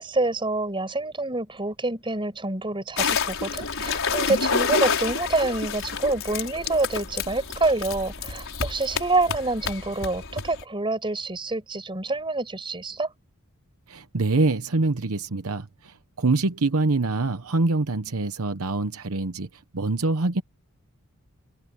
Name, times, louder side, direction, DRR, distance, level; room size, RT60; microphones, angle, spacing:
voice 1, 0.0-13.1, right 2 dB, 25° right, 5.7 m, -27 dB
sound 1, 3.0-10.6, left 5 dB, 60° left, 5.7 m, -28 dB
voice 2, 13.9-19.5 19.7-20.4, right 3 dB, 70° right, 1.0 m, -25 dB
head